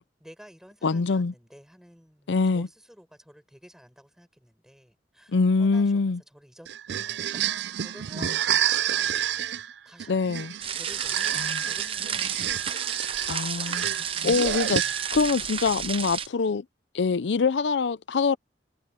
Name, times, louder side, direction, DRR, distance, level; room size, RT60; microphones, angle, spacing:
voice 1, 0.2-9.3 9.9-13.8 14.5-14.6 15.1-16.6, equal, 5° right, 7.0 m, -53 dB
voice 2, 0.8-1.3 2.3-2.7 5.3-6.2 8.2-8.3 10.1-10.5 11.4-11.6 13.3-13.8 14.2-16.6 16.9-18.4, left 4 dB, 80° left, 0.5 m, -24 dB
sound 1, 6.7-15.3, right 10 dB, 70° right, 0.4 m, -29 dB
sound 2, 10.6-16.3, right 8 dB, 30° right, 0.8 m, -31 dB
head